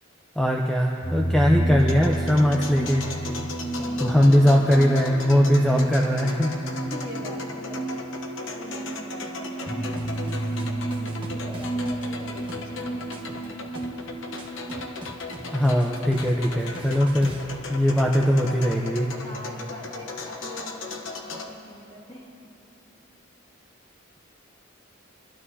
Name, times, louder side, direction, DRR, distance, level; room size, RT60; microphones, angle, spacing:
voice 1, 0.4-3.1 4.0-6.6 15.5-17.4 17.7-19.1, equal, ahead, -1 dB, 0.7 m, -20 dB
sound 1, 1.0-16.6, right 1 dB, 40° left, 1.5 m, -31 dB
sound 2, 1.8-21.5, left 3 dB, 70° left, 1.0 m, -37 dB
voice 2, 3.8-4.8 6.9-7.9 8.4-10.3 10.6-13.6 19.2-22.4, left 1 dB, 25° left, -5 dB, 2.6 m, -42 dB
sound 3, 10.0-17.6, right 1 dB, 25° right, 1.1 m, -43 dB
25.0 x 12.5 x 2.8 m, 2.7 s
head